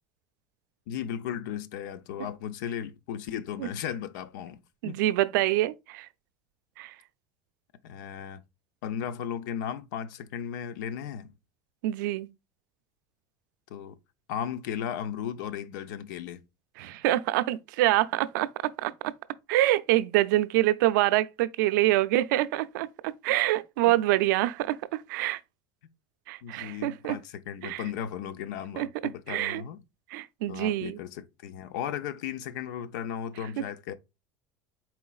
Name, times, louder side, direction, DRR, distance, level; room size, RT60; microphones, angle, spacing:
voice 1, 0.9-5.0 7.8-8.4 8.8-11.3 13.7-14.0 14.3-16.4 26.4-29.8 30.5-33.9, left 9 dB, 80° left, 0.5 m, -36 dB
voice 2, 4.8-6.1 6.8-6.9 11.8-12.3 16.8-19.1 19.5-22.9 23.2-25.4 26.3-27.2 27.6-27.8 28.8-28.9 29.3-29.6 30.1-31.0, right 15 dB, 85° right, 0.4 m, -26 dB
4.3 x 3.9 x 2.3 m
cardioid pair, 165°, 10 cm